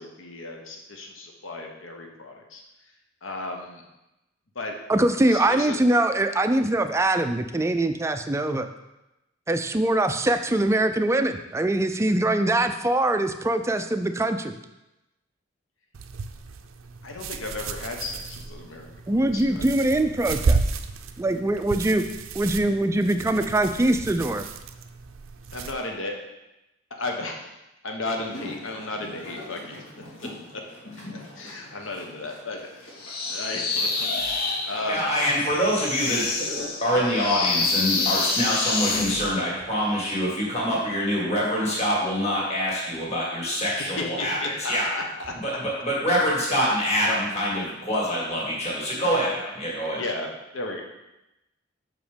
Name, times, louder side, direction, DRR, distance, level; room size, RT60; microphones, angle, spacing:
voice 1, 0.0-2.6 3.2-3.8 4.5-4.8 5.2-5.8 17.0-19.7 25.5-26.2 26.9-27.5 27.8-29.8 30.2-30.6 31.1-32.7 33.3-35.2 43.6-45.3 49.9-50.8, left 2 dB, 70° left, 2 dB, 1.1 m, -34 dB
voice 2, 4.9-8.7 9.5-14.6 19.1-20.6 21.2-22.0 22.3-24.4, right 1 dB, 15° right, 8 dB, 0.3 m, -23 dB
sound 1, 15.9-25.7, right 4 dB, 80° right, 0.5 m, -32 dB
sound 2, 28.0-36.9, left 1 dB, 90° left, 2.5 m, -43 dB
sound 3, 33.0-39.3, left 3 dB, 50° left, 0.9 m, -27 dB
voice 3, 34.9-36.3 36.8-44.9 45.4-50.0, equal, 35° left, -5 dB, 2.0 m, -25 dB
6.0 x 5.0 x 5.1 m, 0.95 s
head